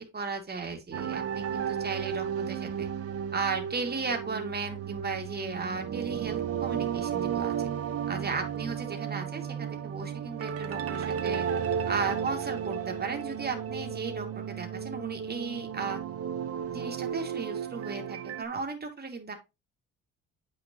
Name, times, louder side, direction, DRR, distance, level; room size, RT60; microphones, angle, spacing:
voice 1, 0.0-2.9 3.3-7.5 8.1-11.5 11.9-16.0 16.7-19.3, right 4 dB, 30° right, 3 dB, 2.6 m, -35 dB
sound 1, 0.9-18.4, right 8 dB, 50° right, 0.9 m, -33 dB
8.7 x 6.1 x 3.1 m, 0.25 s
cardioid pair, 90°, 30 cm